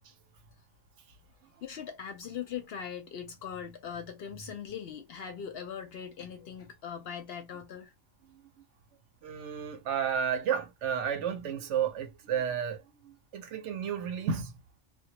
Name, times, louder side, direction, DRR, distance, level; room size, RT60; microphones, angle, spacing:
voice 1, 1.6-7.9, left 8 dB, 65° left, 0.7 m, -40 dB
voice 2, 9.2-14.5, right 8 dB, 70° right, 0.9 m, -32 dB
2.2 x 2.1 x 2.7 m
omnidirectional pair, 1.3 m